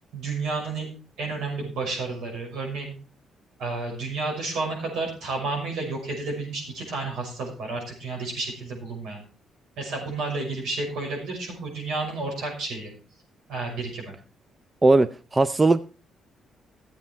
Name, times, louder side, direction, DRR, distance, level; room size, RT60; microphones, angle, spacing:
voice 1, 0.1-0.9 1.2-2.9 3.6-9.2 9.8-12.9 13.5-14.1, right 3 dB, 80° right, 0 dB, 6.0 m, -31 dB
voice 2, 14.8-15.8, right 2 dB, 20° right, 14 dB, 0.5 m, -19 dB
13.5 x 8.4 x 4.4 m, 0.36 s
cardioid pair, 90°, 0 cm